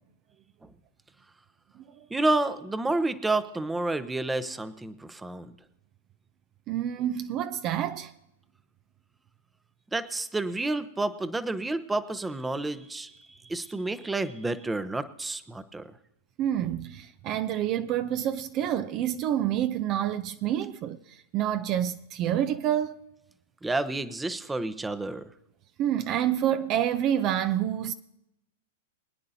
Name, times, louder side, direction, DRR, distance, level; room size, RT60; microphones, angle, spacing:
voice 1, 2.1-5.5 9.9-15.9 23.6-25.2, right 2 dB, 10° right, 0.8 m, -30 dB
voice 2, 6.7-8.1 16.4-23.0 25.8-27.9, right 10 dB, 40° right, 0.6 m, -28 dB
24.0 x 9.7 x 2.8 m
hypercardioid pair, 110°, 0 cm